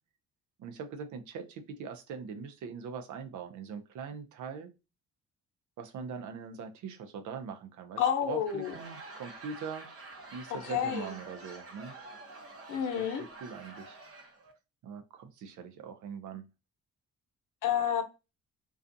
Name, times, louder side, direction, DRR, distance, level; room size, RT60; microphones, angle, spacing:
voice 1, 0.6-4.7 5.8-9.9 10.3-11.9 12.9-14.0 14.8-16.4, right 6 dB, 75° right, 0.6 m, -42 dB
voice 2, 8.0-8.7 10.5-11.1 12.7-13.2 17.6-18.0, left 8 dB, 80° left, 0.7 m, -29 dB
Laughter / Crowd, 8.3-14.5, right 2 dB, 50° right, 0.9 m, -48 dB
2.4 x 2.3 x 2.5 m
cardioid pair, 90°, 30 cm